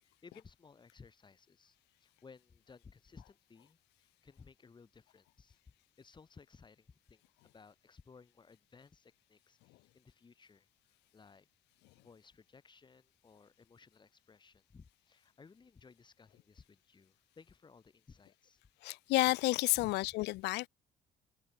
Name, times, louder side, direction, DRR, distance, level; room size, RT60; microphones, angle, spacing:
voice 1, 0.2-5.6 6.0-10.7 11.1-11.5 12.0-18.6 19.8-20.0, left 5 dB, 25° left, 4.2 m, -59 dB
voice 2, 18.8-20.7, left 21 dB, 90° left, 0.7 m, -30 dB
open air
cardioid pair, 110°, 17 cm